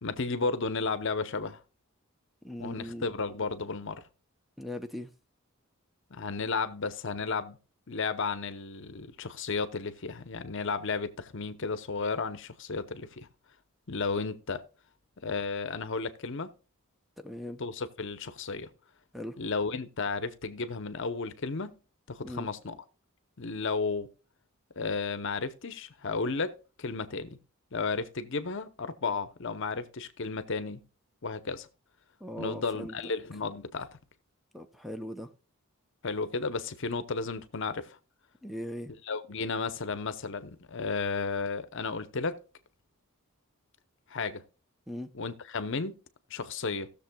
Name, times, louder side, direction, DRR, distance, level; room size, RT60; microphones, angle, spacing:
voice 1, 0.0-1.6 2.6-4.0 6.1-7.6 7.9-13.3 13.9-14.6 15.2-16.5 17.6-18.7 19.4-21.8 22.1-22.8 23.4-24.1 24.8-27.4 27.7-30.8 31.2-31.7 32.4-33.9 36.0-38.0 39.1-42.4 44.1-44.4 45.1-45.9 46.3-46.9, left 4 dB, 60° left, 0.8 m, -33 dB
voice 2, 2.4-3.1 4.6-5.1 17.2-17.6 19.1-19.4 22.2-22.5 32.2-33.0 34.5-35.3 38.4-38.9 44.9-45.1, left 1 dB, ahead, 0.6 m, -39 dB
18.0 x 6.8 x 2.3 m
head